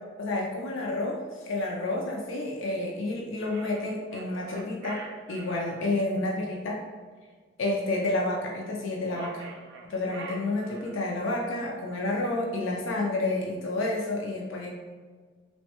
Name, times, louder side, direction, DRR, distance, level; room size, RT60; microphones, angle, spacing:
voice 1, 0.2-5.0 5.3-6.8 7.6-9.5 9.9-14.7, left 2 dB, 70° left, -1 dB, 0.4 m, -30 dB
sound 1, 3.4-5.8 9.0-11.1, right 4 dB, 60° right, 0.4 m, -44 dB
3.0 x 2.1 x 2.9 m, 1.5 s
head